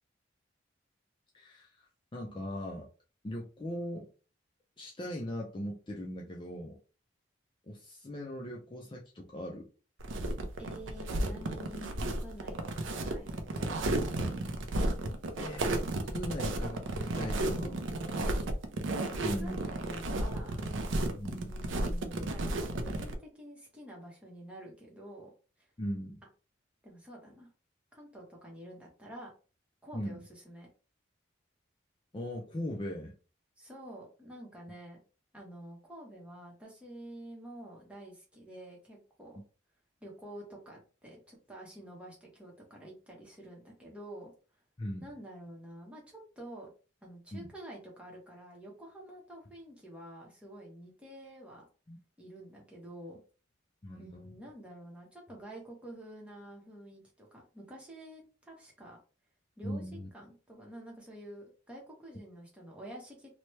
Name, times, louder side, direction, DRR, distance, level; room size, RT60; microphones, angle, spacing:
voice 1, 1.3-1.9 2.1-2.9 3.2-4.1 4.8-6.8 7.7-9.7 14.8-14.9 15.4-15.8 16.1-16.8 17.1-17.8 19.2-19.6 21.1-21.5 25.8-26.2 29.9-30.2 32.1-33.1 44.8-45.1 47.3-47.5 51.9-52.0 53.8-54.3 59.6-60.1, equal, 25° left, -1 dB, 0.4 m, -39 dB
sound 1, 10.0-23.1, right 2 dB, 80° right, 0.5 m, -33 dB
voice 2, 10.6-14.0 18.2-18.5 19.2-20.7 21.4-25.3 25.6-25.7 26.8-27.5 27.9-29.3 29.8-30.7 33.6-35.0 35.3-39.4 40.0-44.3 45.0-46.7 47.0-51.6 52.2-53.2 54.0-59.0 59.6-63.3, right 1 dB, 5° right, -2 dB, 0.8 m, -49 dB
2.9 x 2.1 x 3.0 m, 0.36 s
head